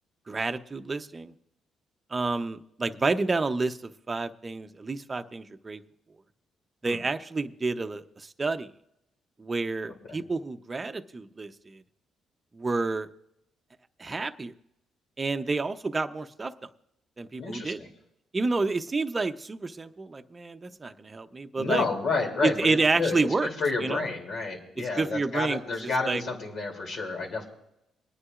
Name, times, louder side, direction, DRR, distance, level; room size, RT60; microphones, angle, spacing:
voice 1, 0.3-1.3 2.1-5.8 6.8-8.7 9.4-11.8 12.5-13.1 14.0-14.5 15.2-16.5 17.2-17.8 18.3-21.8 22.4-23.5 23.8-24.0 24.8-26.2, right 3 dB, 25° right, 8 dB, 0.8 m, -29 dB
voice 2, 17.4-17.9 21.6-27.5, left 3 dB, 65° left, 1 dB, 3.0 m, -30 dB
26.5 x 9.7 x 2.5 m, 0.81 s
cardioid pair, 90°, 0 cm